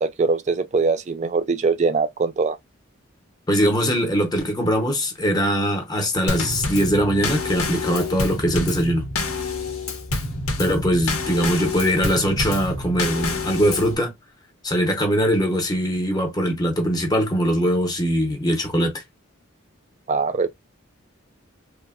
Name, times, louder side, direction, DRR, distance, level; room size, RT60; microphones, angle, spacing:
voice 1, 0.0-2.6 20.1-20.5, right 4 dB, 35° right, 0.3 m, -22 dB
voice 2, 3.5-9.1 10.6-14.1 14.6-19.0, equal, 20° left, 0.6 m, -21 dB
Drum kit / Snare drum / Bass drum, 6.3-14.0, left 3 dB, 90° left, 0.7 m, -27 dB
3.2 x 2.0 x 2.3 m
head